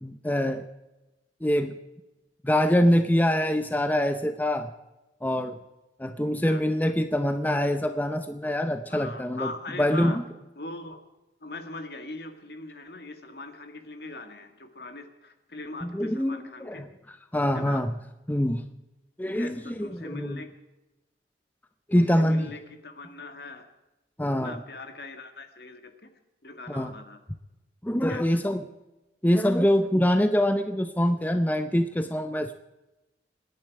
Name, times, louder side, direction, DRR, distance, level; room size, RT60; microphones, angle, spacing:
voice 1, 0.0-0.6 1.4-1.8 2.4-4.7 5.2-5.6 6.0-9.5 9.8-10.2 15.8-16.9 17.3-18.0 18.3-18.7 19.2-20.4 21.9-22.5 24.2-24.6 26.7-26.9 27.8-28.6 29.2-32.5, equal, 10° left, 8 dB, 0.6 m, -24 dB
voice 2, 8.9-10.2 10.6-11.0 11.4-16.8 17.5-17.8 19.3-20.5 22.0-23.7 24.4-26.1 26.4-27.2 28.0-28.2, left 2 dB, 60° left, 7 dB, 1.9 m, -41 dB
26.5 x 10.5 x 4.8 m, 1.0 s
head